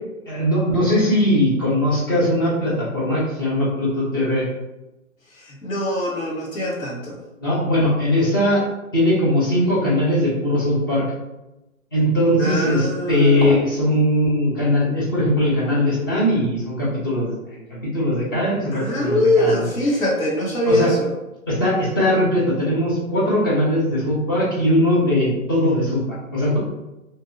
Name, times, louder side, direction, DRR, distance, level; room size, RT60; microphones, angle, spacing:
voice 1, 0.3-4.5 7.4-8.6 8.9-11.0 11.9-17.6 17.9-19.6 20.7-20.9 21.5-26.6, left 1 dB, 15° left, -6 dB, 0.4 m, -20 dB
voice 2, 5.3-7.2 12.4-13.5 18.7-21.1, left 1 dB, 70° left, -4 dB, 1.4 m, -22 dB
2.7 x 2.6 x 2.6 m, 0.96 s
figure-of-eight pair, 135°, 42 cm